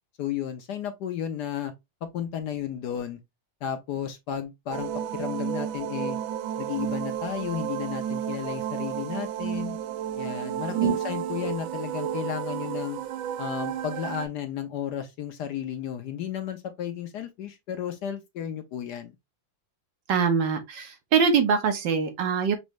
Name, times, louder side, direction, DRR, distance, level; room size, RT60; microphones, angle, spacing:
voice 1, 0.2-1.7 2.0-3.2 3.6-6.2 6.6-9.8 10.2-13.0 13.4-19.1, left 9 dB, 65° left, 1.1 m, -33 dB
sound 1, 4.7-14.3, right 10 dB, 85° right, 1.5 m, -32 dB
voice 2, 20.1-22.6, right 6 dB, 70° right, 1.6 m, -23 dB
6.2 x 2.7 x 3.1 m
omnidirectional pair, 2.1 m